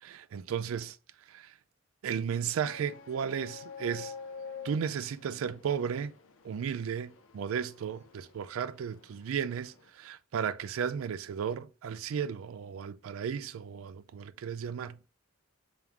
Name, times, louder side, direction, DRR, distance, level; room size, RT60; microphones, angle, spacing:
voice 1, 0.0-1.0 1.3-1.5 2.0-4.1 4.6-6.1 6.4-15.0, right 7 dB, 75° right, 0.3 m, -34 dB
sound 1, 2.6-9.9, left 5 dB, 70° left, 0.5 m, -48 dB
3.6 x 3.5 x 2.9 m
head